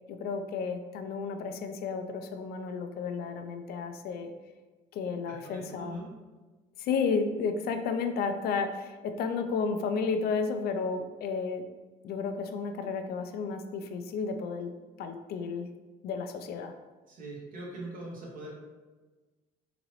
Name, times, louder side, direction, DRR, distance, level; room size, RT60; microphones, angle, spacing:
voice 1, 0.1-4.3 4.9-6.0 6.8-11.6 12.0-14.7 15.0-15.7 16.0-16.7, left 5 dB, 70° left, 7 dB, 0.4 m, -32 dB
voice 2, 5.4-6.1 17.1-18.5, right 2 dB, 55° right, -3 dB, 1.2 m, -42 dB
3.9 x 2.9 x 3.0 m, 1.2 s
cardioid pair, 110°, 17 cm